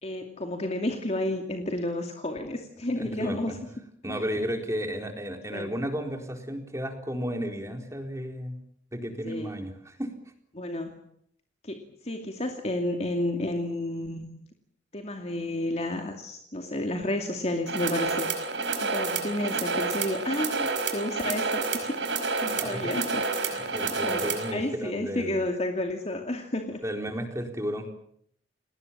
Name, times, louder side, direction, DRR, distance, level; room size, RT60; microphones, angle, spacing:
voice 1, 0.0-3.5 4.1-4.2 5.5-5.7 9.2-9.6 10.5-11.0 11.6-11.8 12.0-14.3 14.9-18.3 18.8-22.0 22.4-23.7 24.0-26.8, left 1 dB, 35° left, 4 dB, 2.5 m, -31 dB
voice 2, 3.0-3.6 4.0-8.6 8.9-10.1 22.4-22.9 23.4-25.5 26.8-27.9, equal, 15° right, 4 dB, 4.1 m, -33 dB
sound 1, 17.7-24.5, right 4 dB, 85° right, 4.9 m, -29 dB
30.0 x 19.5 x 7.5 m, 0.68 s
head